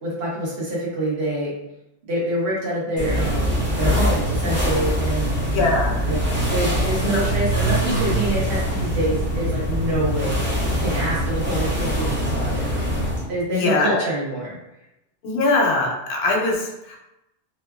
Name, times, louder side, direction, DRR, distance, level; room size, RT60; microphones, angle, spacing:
voice 1, 0.0-1.5 2.1-5.3 6.0-6.2 6.5-10.4 10.8-12.6 13.3-14.6, right 1 dB, 70° right, -5 dB, 1.1 m, -26 dB
sound 1, 3.0-13.3, equal, 15° right, 0.6 m, -23 dB
voice 2, 5.5-6.1 7.1-7.2 13.5-14.0 15.2-17.0, left 2 dB, 70° left, 0 dB, 0.8 m, -22 dB
2.8 x 2.3 x 2.3 m, 0.90 s
omnidirectional pair, 1.1 m